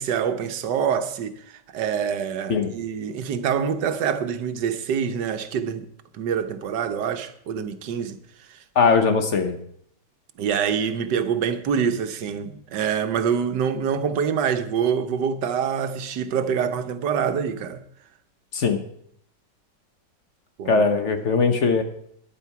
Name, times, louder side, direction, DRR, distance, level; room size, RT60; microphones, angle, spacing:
voice 1, 0.0-5.9 6.1-8.2 8.5-8.6 10.4-17.8 20.6-20.8, right 7 dB, 80° right, 1.5 m, -25 dB
voice 2, 8.8-9.6 18.5-18.8 20.7-21.8, left 4 dB, 45° left, 1.3 m, -20 dB
14.0 x 10.0 x 4.6 m
omnidirectional pair, 1.9 m